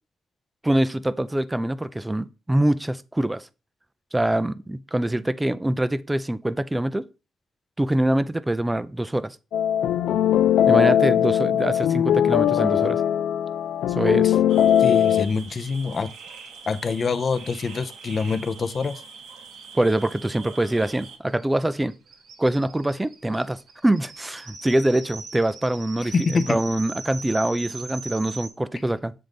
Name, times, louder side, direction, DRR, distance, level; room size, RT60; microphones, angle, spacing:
voice 1, 0.6-3.5 4.1-7.1 7.8-9.4 10.7-13.0 14.0-14.4 19.7-22.0 22.4-26.1 26.5-29.1, right 1 dB, 10° right, 0.4 m, -24 dB
sound 1, 9.5-15.2, left 10 dB, 85° left, 0.3 m, -20 dB
sound 2, 14.5-21.2, right 5 dB, 85° right, 1.0 m, -43 dB
voice 2, 14.8-16.1 16.7-19.0 26.1-26.6, left 4 dB, 40° left, 0.6 m, -25 dB
sound 3, 18.8-18.9 19.1-19.2 19.5-28.5, right 4 dB, 65° right, 1.2 m, -41 dB
7.6 x 3.9 x 3.5 m
cardioid pair, 130°, 0 cm